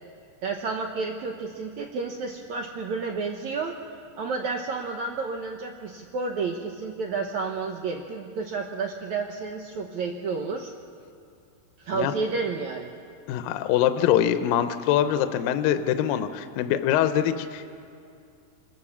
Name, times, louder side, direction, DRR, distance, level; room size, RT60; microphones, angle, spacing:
voice 1, 0.4-10.7 11.8-12.9, right 4 dB, 65° right, 2 dB, 1.9 m, -31 dB
voice 2, 13.3-17.7, left 10 dB, 75° left, 9 dB, 2.4 m, -24 dB
26.0 x 18.5 x 7.2 m, 2.4 s
omnidirectional pair, 4.5 m